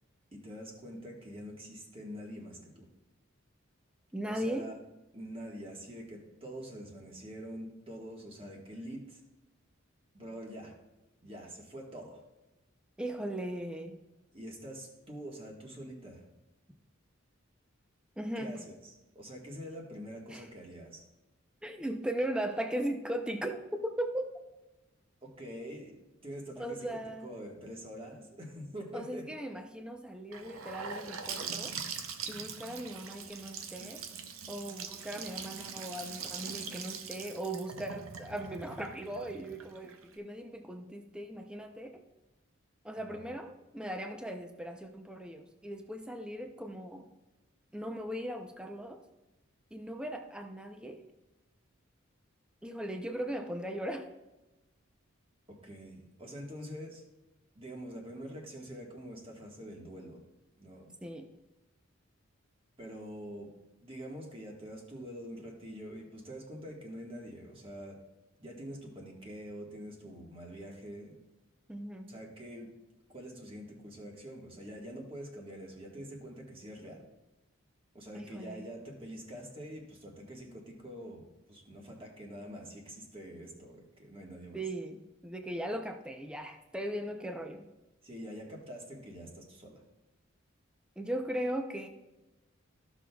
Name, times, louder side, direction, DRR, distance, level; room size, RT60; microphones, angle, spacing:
voice 1, 0.3-2.9 4.3-4.7 5.1-9.2 10.1-10.7 11.2-12.2 14.3-16.3 18.3-21.0 25.2-26.0 26.2-29.2 42.9-43.3 55.5-57.0 57.5-60.2 60.6-60.9 62.8-63.5 63.8-68.0 68.4-71.1 72.1-72.7 73.1-77.1 77.9-84.6 88.0-89.8, equal, 25° right, 0 dB, 1.5 m, -45 dB
voice 2, 4.1-4.7 13.0-14.0 18.2-18.6 20.3-20.4 21.6-24.3 26.6-27.3 28.9-31.7 32.3-34.0 34.5-42.0 42.8-47.1 47.7-49.0 49.7-51.0 52.6-54.1 61.0-61.3 71.7-72.2 78.1-78.7 84.5-87.7 91.0-91.9, right 1 dB, 5° right, 5 dB, 0.5 m, -38 dB
Gurgling / Sink (filling or washing) / Bathtub (filling or washing), 30.3-40.1, right 6 dB, 85° right, 0.7 m, -42 dB
14.0 x 6.2 x 2.3 m, 1.0 s
head